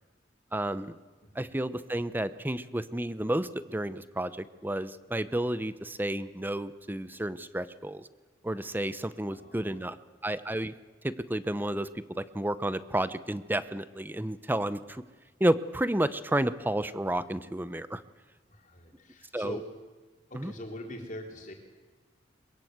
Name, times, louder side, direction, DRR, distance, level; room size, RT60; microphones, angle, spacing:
voice 1, 0.5-0.9 1.3-8.1 8.4-10.0 10.2-10.7 11.0-15.0 15.4-18.0 19.3-19.6 20.3-20.5, right 1 dB, 10° right, 14 dB, 0.8 m, -31 dB
voice 2, 9.2-10.0 18.5-19.7 20.3-21.5, left 1 dB, 45° left, 2 dB, 4.0 m, -43 dB
22.5 x 21.5 x 8.0 m, 1.4 s
head